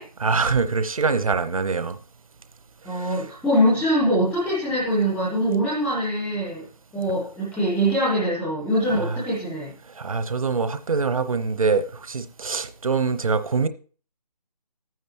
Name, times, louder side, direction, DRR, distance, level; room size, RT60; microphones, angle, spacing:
voice 1, 0.2-2.0 2.9-3.3 8.9-9.2 10.0-13.7, right 4 dB, 60° right, 0.9 m, -24 dB
voice 2, 2.8-6.7 6.9-9.7, equal, ahead, 0.4 m, -23 dB
13.0 x 9.4 x 2.9 m
figure-of-eight pair, 155°, 20 cm